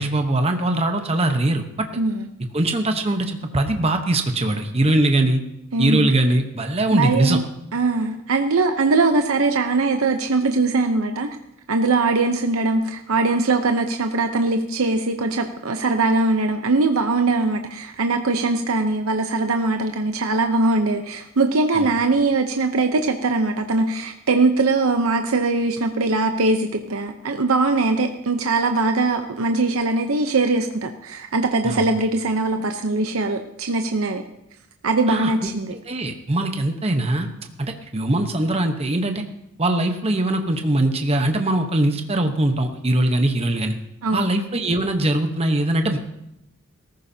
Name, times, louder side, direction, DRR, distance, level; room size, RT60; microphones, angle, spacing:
voice 1, 0.0-1.6 2.5-5.4 5.8-7.4 21.7-21.9 31.6-31.9 35.1-35.3 35.7-37.3 37.6-39.2 39.6-43.7 44.1-46.0, right 1 dB, 30° right, 5 dB, 1.0 m, -21 dB
voice 2, 2.0-2.3 5.7-6.1 6.9-7.4 7.7-11.3 11.7-34.2 34.8-35.7 44.0-44.3, right 3 dB, 80° right, 6 dB, 0.8 m, -21 dB
18.5 x 14.5 x 2.8 m, 0.83 s
head